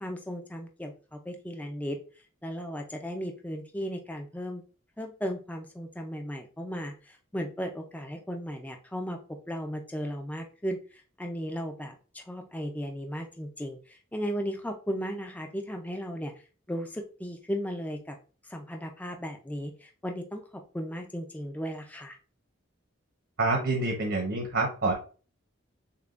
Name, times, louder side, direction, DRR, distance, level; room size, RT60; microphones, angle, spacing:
voice 1, 0.0-2.0 2.4-4.6 5.0-9.2 9.5-10.8 11.2-16.3 16.7-18.2 18.4-22.2, equal, 5° left, 3 dB, 0.4 m, -36 dB
voice 2, 23.4-24.9, right 2 dB, 65° right, 0 dB, 1.0 m, -27 dB
6.7 x 2.3 x 2.5 m, 0.36 s
head